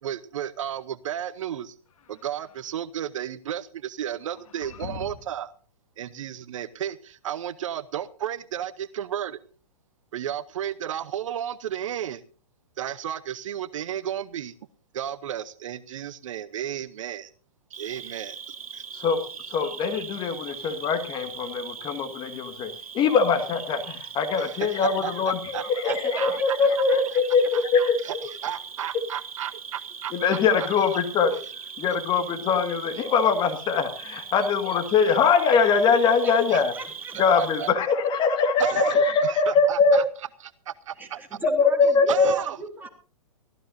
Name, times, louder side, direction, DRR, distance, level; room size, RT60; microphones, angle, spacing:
voice 1, 0.0-1.7 2.1-5.5 6.0-9.4 10.1-12.2 12.8-14.5 14.9-17.3 17.7-18.8 24.4-26.6 27.5-30.1 30.6-30.7 31.3-31.4 32.9-33.0 36.5-36.6 37.4-37.7 38.6-40.0 40.9-41.2 42.1-42.6, right 10 dB, 65° right, 16 dB, 0.9 m, -33 dB
sound 1, 1.9-2.8 4.2-5.4, left 5 dB, 70° left, 2.3 m, -43 dB
Cricket, 17.7-37.7, right 6 dB, 80° right, 2.7 m, -40 dB
voice 2, 18.9-28.0 30.1-31.4 31.8-36.7 37.2-40.0 41.6-42.3, left 5 dB, 25° left, 7 dB, 1.9 m, -22 dB
voice 3, 25.9-27.2 35.9-37.2 41.0-42.9, right 3 dB, 10° right, 2 dB, 3.5 m, -39 dB
23.5 x 15.0 x 2.7 m, 0.39 s
hypercardioid pair, 125°, 18 cm